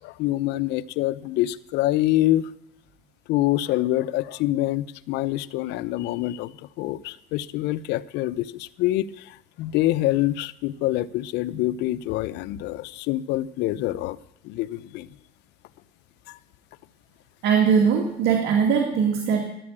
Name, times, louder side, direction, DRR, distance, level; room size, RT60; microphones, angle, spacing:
voice 1, 0.0-2.5 3.3-6.5 6.8-9.1 9.6-14.2 14.4-15.1, left 15 dB, 70° left, 16 dB, 0.7 m, -25 dB
voice 2, 17.4-19.5, right 6 dB, 65° right, 2 dB, 2.2 m, -20 dB
13.5 x 9.8 x 8.7 m, 0.78 s
cardioid pair, 120°, 18 cm